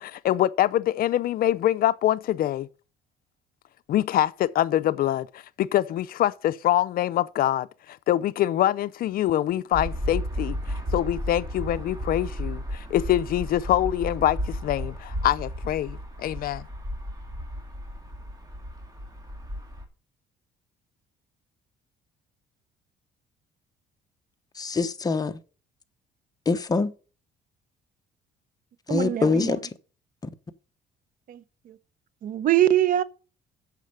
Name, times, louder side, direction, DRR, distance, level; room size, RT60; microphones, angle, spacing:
voice 1, 0.0-2.7 3.9-10.6 10.9-16.6, left 12 dB, 60° left, 0.6 m, -24 dB
sound 1, 9.7-19.8, equal, 20° right, 2.6 m, -33 dB
voice 2, 24.6-25.4 26.5-26.9 28.9-29.6, left 4 dB, 20° left, 1.0 m, -24 dB
voice 3, 28.9-29.5 31.3-31.8 32.2-33.0, right 12 dB, 55° right, 0.7 m, -23 dB
8.3 x 6.5 x 6.6 m
cardioid pair, 110°, 17 cm